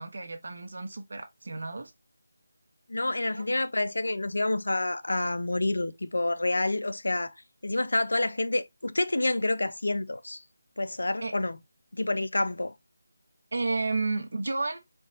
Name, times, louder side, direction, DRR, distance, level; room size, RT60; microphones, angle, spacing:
voice 1, 0.0-1.9 3.4-3.5 11.2-11.3 13.5-14.8, right 3 dB, 60° right, 1.0 m, -32 dB
voice 2, 2.9-7.3 7.6-10.4 10.8-11.6 11.9-12.7, left 2 dB, 80° left, 0.5 m, -28 dB
4.5 x 3.0 x 2.8 m
figure-of-eight pair, 165°, 0 cm